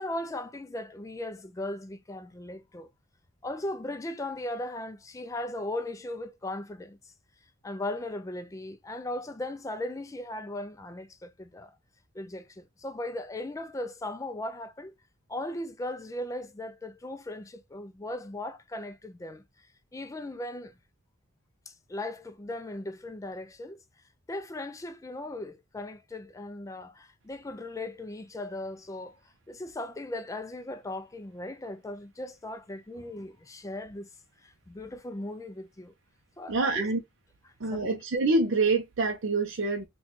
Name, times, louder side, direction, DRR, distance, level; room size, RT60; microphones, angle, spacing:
voice 1, 0.0-2.9 3.4-7.1 7.6-11.7 12.1-14.9 15.3-19.7 19.9-20.7 21.7-23.8 24.3-29.2 29.5-34.1 34.4-35.9 36.4-36.9 37.4-37.9, left 1 dB, 15° left, 0.3 m, -38 dB
voice 2, 36.5-37.0 37.6-39.9, right 3 dB, 60° right, 0.5 m, -26 dB
4.0 x 2.3 x 2.8 m
head